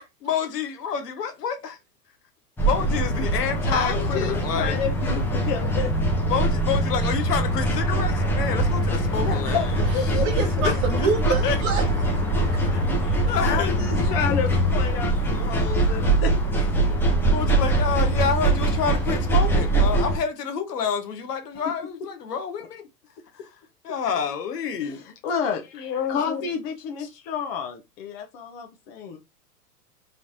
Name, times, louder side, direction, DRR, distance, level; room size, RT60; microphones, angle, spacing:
voice 1, 0.2-1.8 2.6-4.8 6.3-9.8 10.6-11.6 12.7-13.8 17.3-22.9 23.3-23.5 23.8-25.0 25.7-26.5 27.0-27.1, left 7 dB, 80° left, 0.9 m, -28 dB
sound 1, 2.6-20.2, right 1 dB, 5° left, 0.4 m, -23 dB
voice 2, 3.7-5.9 9.2-10.3 13.4-16.3 24.8-25.8 26.1-29.2, left 6 dB, 40° left, 0.8 m, -30 dB
voice 3, 10.2-12.3, right 5 dB, 50° right, 1.0 m, -27 dB
4.0 x 3.3 x 2.6 m
hypercardioid pair, 110°, 47 cm